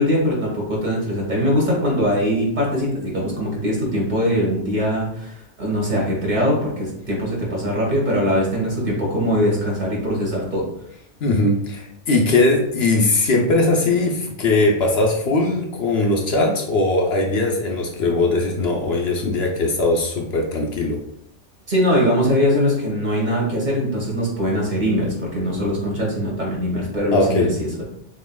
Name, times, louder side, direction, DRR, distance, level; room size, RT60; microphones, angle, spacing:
voice 1, 0.0-10.7 21.7-27.8, equal, 40° right, -3 dB, 1.4 m, -21 dB
voice 2, 11.2-21.0 27.1-27.5, left 2 dB, 65° left, 1 dB, 0.9 m, -20 dB
6.3 x 2.9 x 2.2 m, 0.72 s
omnidirectional pair, 1.2 m